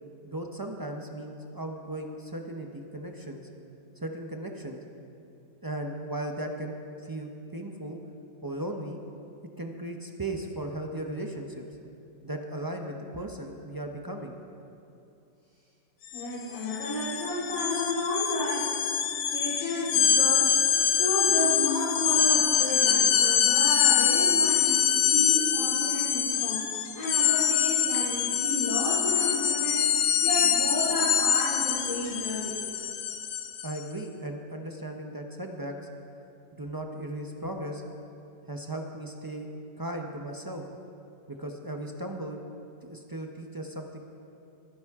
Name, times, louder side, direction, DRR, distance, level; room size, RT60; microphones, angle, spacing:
voice 1, 0.2-3.5 4.0-4.8 5.6-8.0 8.4-9.0 9.6-11.7 12.2-14.3 33.6-35.7 36.5-37.8 38.5-39.5 39.8-40.6 41.3-42.4 42.8-44.0, right 1 dB, 30° right, 2 dB, 0.4 m, -36 dB
sound 1, 16.1-16.2 16.5-33.8, left 8 dB, 70° left, 1.2 m, -25 dB
voice 2, 16.1-18.9 19.3-20.7 21.0-26.6 26.9-29.9 30.2-32.6, left 1 dB, 50° left, -9 dB, 3.1 m, -31 dB
23.5 x 10.5 x 3.6 m, 2.7 s
omnidirectional pair, 1.8 m